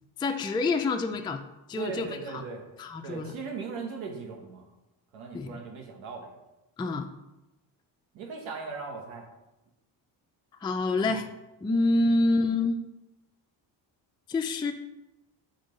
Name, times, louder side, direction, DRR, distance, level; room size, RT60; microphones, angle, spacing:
voice 1, 0.2-1.4 1.7-2.4 2.8-3.4 5.3-5.5 6.8-7.1 10.6-11.3 11.6-12.8 14.3-14.7, left 2 dB, 10° left, 5 dB, 0.4 m, -27 dB
voice 2, 1.8-2.6 3.0-4.7 5.1-6.3 8.1-9.3 11.0-11.2 12.0-12.1, right 4 dB, 80° right, 1 dB, 1.3 m, -38 dB
4.9 x 4.5 x 5.3 m, 0.96 s
cardioid pair, 85°, 47 cm